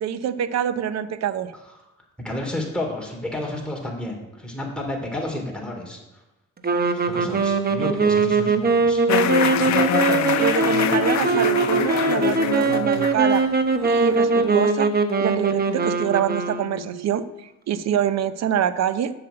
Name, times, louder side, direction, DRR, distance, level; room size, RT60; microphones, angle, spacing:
voice 1, 0.0-1.5 10.4-13.4 13.8-14.9 15.2-19.1, right 9 dB, 60° right, 13 dB, 0.8 m, -25 dB
voice 2, 2.2-6.0 7.1-9.0, left 1 dB, 5° left, -1 dB, 3.2 m, -31 dB
Sax Alto - F minor, 6.6-17.0, right 4 dB, 30° right, 1.0 m, -21 dB
sound 1, 9.1-14.7, left 10 dB, 65° left, 0.8 m, -25 dB
7.8 x 6.2 x 7.9 m, 0.99 s
cardioid pair, 90°, 30 cm